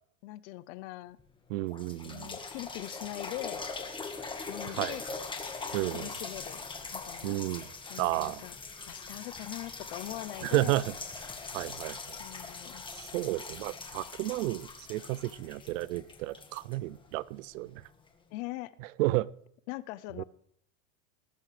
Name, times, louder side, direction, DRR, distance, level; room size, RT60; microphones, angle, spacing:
voice 1, 0.2-1.2 2.0-3.6 4.5-5.0 5.9-6.6 6.9-7.4 7.9-8.5 8.9-10.8 12.2-12.8 18.3-18.8 19.7-20.2, left 18 dB, 60° left, 18 dB, 0.7 m, -41 dB
sound 1, 1.2-1.3 1.7-17.4 18.1-18.2, left 4 dB, 15° left, 1.6 m, -42 dB
voice 2, 1.5-2.3 4.8-5.0 5.7-6.1 7.2-7.7 8.0-8.4 10.4-10.9 11.5-12.2 12.9-17.8 19.0-19.3 20.2-20.3, right 18 dB, 75° right, 21 dB, 0.6 m, -32 dB
20.0 x 11.0 x 3.3 m, 0.71 s
supercardioid pair, 135°, 39 cm